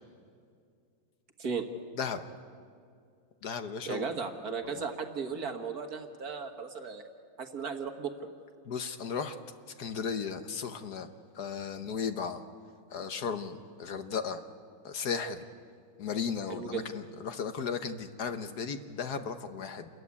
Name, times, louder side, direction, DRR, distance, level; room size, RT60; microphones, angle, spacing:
voice 1, 1.4-1.7 3.9-7.0 7.4-8.1 16.5-16.8, right 5 dB, 50° right, 5 dB, 1.8 m, -36 dB
voice 2, 3.4-4.1 4.8-4.9 8.7-9.4 9.8-11.1 11.3-12.4 12.9-14.4 14.8-15.4 16.0-19.9, left 6 dB, 55° left, 9 dB, 1.3 m, -35 dB
28.0 x 14.5 x 9.6 m, 2.3 s
omnidirectional pair, 2.3 m